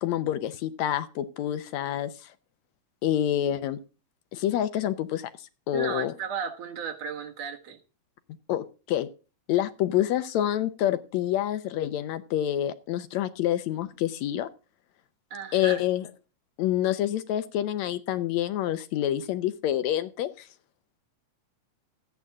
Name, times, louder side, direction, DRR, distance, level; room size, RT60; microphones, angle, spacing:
voice 1, 0.0-2.1 3.0-3.8 4.3-5.3 5.7-6.1 8.5-9.1 9.5-14.5 15.5-16.0 16.6-20.5, left 12 dB, 75° left, 2.0 m, -27 dB
voice 2, 5.7-7.8 15.3-15.8, right 6 dB, 65° right, 2.4 m, -34 dB
14.0 x 9.3 x 3.6 m
omnidirectional pair, 3.3 m